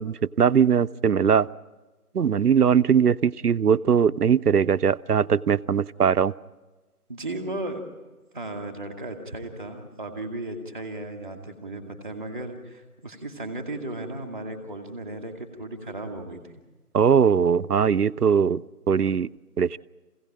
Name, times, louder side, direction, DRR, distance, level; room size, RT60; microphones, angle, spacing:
voice 1, 0.0-1.5 2.1-6.3 16.9-18.6 18.9-19.3 19.6-19.8, right 7 dB, 85° right, 14 dB, 0.7 m, -20 dB
voice 2, 7.1-7.8 8.3-16.4, right 2 dB, 5° left, 4 dB, 1.4 m, -35 dB
25.5 x 16.5 x 9.0 m, 1.2 s
figure-of-eight pair, 170°, 46 cm